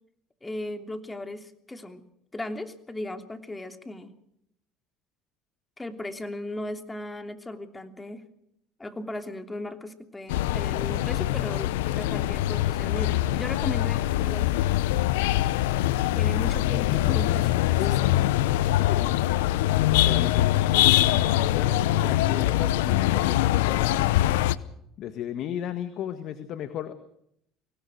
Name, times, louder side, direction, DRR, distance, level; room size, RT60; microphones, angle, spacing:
voice 1, 0.4-2.0 2.3-4.1 5.8-8.2 8.8-14.6 16.1-18.1, left 1 dB, 15° left, 7 dB, 3.1 m, -37 dB
sound 1, 10.3-24.5, left 14 dB, 85° left, 0.8 m, -23 dB
voice 2, 18.8-19.2 20.0-24.0 25.0-26.9, left 10 dB, 60° left, 10 dB, 1.7 m, -35 dB
24.5 x 18.0 x 6.4 m, 0.73 s
supercardioid pair, 80°, 0 cm